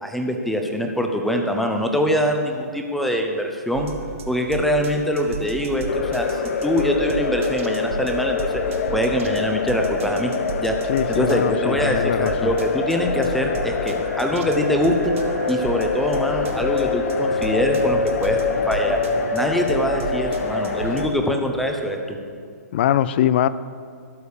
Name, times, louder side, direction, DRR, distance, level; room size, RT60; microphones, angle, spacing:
voice 1, 0.0-3.9 4.3-8.6 8.9-10.3 10.6-10.8 11.1-15.1 15.5-19.0 19.3-22.2, equal, ahead, 0.7 m, -23 dB
sound 1, 3.7-21.1, right 4 dB, 50° right, 1.0 m, -34 dB
sound 2, 5.9-21.1, left 5 dB, 55° left, 0.8 m, -25 dB
voice 2, 10.9-12.5 22.7-23.5, left 11 dB, 40° left, 0.3 m, -22 dB
13.0 x 5.2 x 6.6 m
hypercardioid pair, 155°, 9 cm